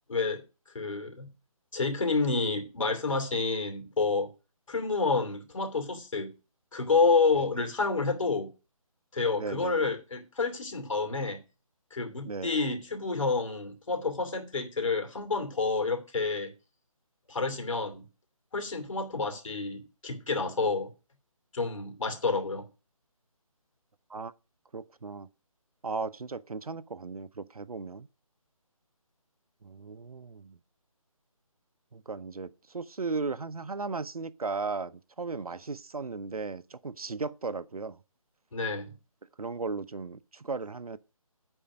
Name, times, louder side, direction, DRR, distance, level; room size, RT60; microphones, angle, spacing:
voice 1, 0.1-0.4 0.7-1.3 1.7-4.3 4.7-6.3 6.7-8.5 9.1-11.4 11.9-16.5 17.3-18.0 18.5-20.9 21.5-22.7 38.5-38.9, left 4 dB, 60° left, 2.8 m, -29 dB
voice 2, 9.4-9.9 12.3-12.5 24.1-24.3 24.7-25.3 25.8-28.1 29.6-30.6 31.9-38.0 39.4-41.0, right 4 dB, 85° right, 0.7 m, -36 dB
10.0 x 4.4 x 6.2 m
figure-of-eight pair, 155°, 18 cm